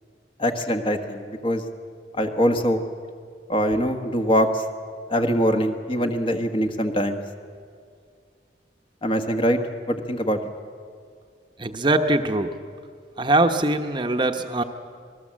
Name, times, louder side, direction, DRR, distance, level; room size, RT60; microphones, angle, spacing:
voice 1, 0.4-1.6 2.1-2.8 3.5-4.6 5.1-7.2 9.0-9.6 9.9-10.4, equal, 30° left, 5 dB, 1.4 m, -23 dB
voice 2, 11.6-12.5 13.2-14.6, right 2 dB, 25° right, 7 dB, 1.0 m, -22 dB
26.5 x 19.5 x 7.6 m, 2.1 s
head